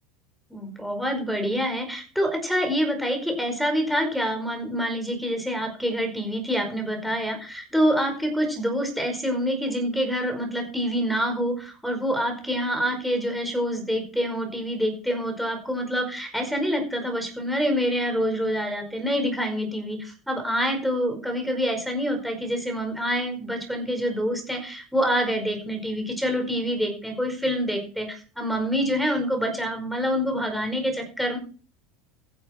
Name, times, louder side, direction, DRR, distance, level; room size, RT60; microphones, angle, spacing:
voice 1, 0.5-31.4, equal, ahead, 2 dB, 5.0 m, -26 dB
14.5 x 10.5 x 4.5 m, 0.39 s
supercardioid pair, 135°, 0 cm